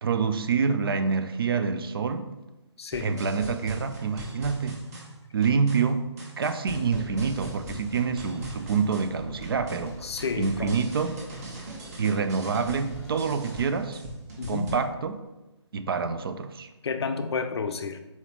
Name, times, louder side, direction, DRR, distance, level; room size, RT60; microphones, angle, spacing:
voice 1, 0.0-2.3 3.0-4.8 5.3-6.0 6.4-10.1 10.4-11.1 12.0-14.0 14.5-15.2 15.7-16.7, right 5 dB, 50° right, 9 dB, 0.4 m, -27 dB
voice 2, 2.8-3.2 10.0-10.8 14.4-14.8 16.8-18.0, left 5 dB, 60° left, 8 dB, 0.5 m, -30 dB
sound 1, 2.9-14.7, right 1 dB, 35° right, 1.0 m, -40 dB
sound 2, 7.0-13.8, left 1 dB, 10° left, 0.6 m, -46 dB
4.0 x 3.9 x 2.9 m, 1.0 s
figure-of-eight pair, 150°, 16 cm